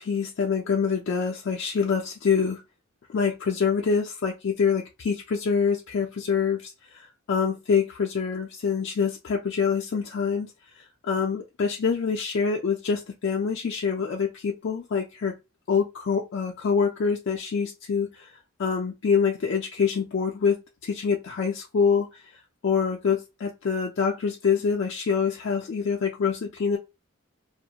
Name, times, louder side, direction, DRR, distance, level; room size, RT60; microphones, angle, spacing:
voice 1, 0.0-2.6 3.1-15.3 15.7-22.2 22.6-26.8, left 6 dB, 60° left, 0.4 m, -26 dB
2.3 x 2.1 x 2.8 m
head